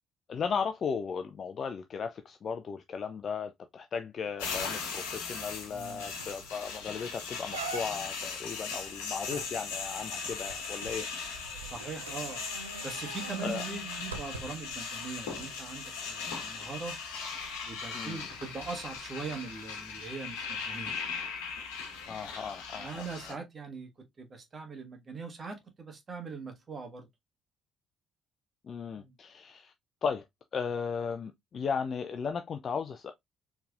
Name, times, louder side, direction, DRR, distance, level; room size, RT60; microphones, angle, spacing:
voice 1, 0.3-11.1 11.4-11.6 13.4-13.6 17.9-18.2 22.1-23.1 28.6-29.7 30.0-30.2 30.5-33.1, left 6 dB, 45° left, 0.5 m, -36 dB
sound 1, 4.4-23.3, left 5 dB, 70° left, 1.2 m, -39 dB
voice 2, 5.7-6.1 11.6-12.5 12.8-17.0 17.6-21.0 22.8-27.1 29.0-29.1, right 4 dB, 35° right, 1.5 m, -41 dB
sound 2, 6.2-6.5 6.9-7.0 7.5-8.2 9.3-14.7 15.4-15.5, right 5 dB, 85° right, 0.4 m, -43 dB
4.6 x 3.4 x 2.4 m
figure-of-eight pair, 50°, 0 cm